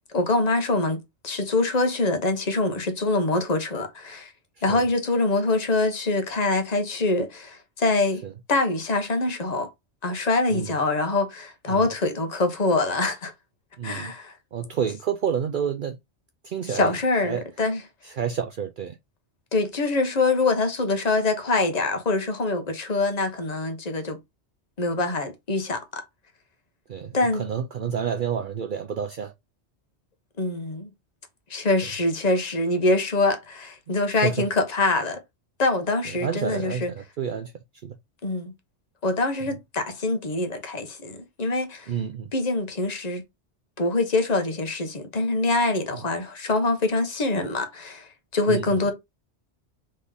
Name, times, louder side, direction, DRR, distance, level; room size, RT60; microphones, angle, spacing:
voice 1, 0.1-4.3 4.6-8.2 8.5-9.7 10.0-13.3 13.8-14.3 16.7-17.8 19.5-24.2 24.8-26.0 27.1-27.4 30.4-30.9 31.5-35.2 35.6-36.9 38.2-38.5 39.0-41.9 42.3-43.2 43.8-48.1 48.3-48.9, left 2 dB, 40° left, 1.1 m, -24 dB
voice 2, 13.8-14.1 14.5-16.0 16.4-17.4 18.0-19.0 26.9-29.3 34.2-34.5 36.0-37.5 37.8-38.0 41.9-42.3 48.5-48.9, right 7 dB, 55° right, 0.6 m, -29 dB
4.0 x 3.7 x 3.5 m
omnidirectional pair, 1.2 m